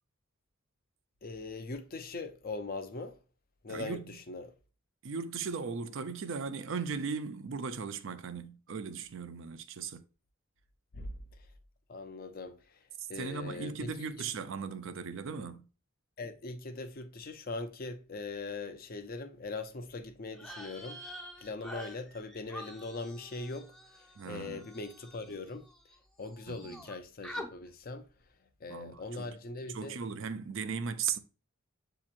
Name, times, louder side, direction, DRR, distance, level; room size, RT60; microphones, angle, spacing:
voice 1, 1.2-3.2 3.6-4.5 10.9-11.5 11.9-12.8 13.1-14.1 16.2-25.7 26.2-28.1 28.6-30.0, left 3 dB, 45° left, 0.5 m, -41 dB
voice 2, 3.7-4.1 5.0-10.0 13.0-15.6 24.2-24.7 26.5-26.8 28.7-29.3 29.7-31.2, right 5 dB, 65° right, 0.5 m, -37 dB
sound 1, 20.3-26.0 26.2-26.9 27.2-27.5, equal, 5° left, 0.6 m, -47 dB
7.2 x 2.9 x 2.4 m
head